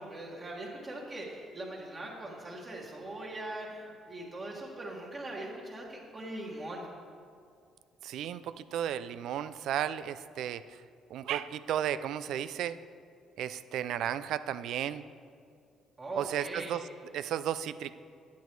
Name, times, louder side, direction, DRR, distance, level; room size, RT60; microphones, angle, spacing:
voice 1, 0.0-6.9 16.0-16.8, right 1 dB, 30° right, -3 dB, 1.7 m, -41 dB
voice 2, 8.0-10.8 11.1-12.8 13.4-15.0 16.2-16.8 17.1-17.9, right 10 dB, 70° right, 13 dB, 0.4 m, -34 dB
10.5 x 9.4 x 4.6 m, 2.3 s
cardioid pair, 130°, 0 cm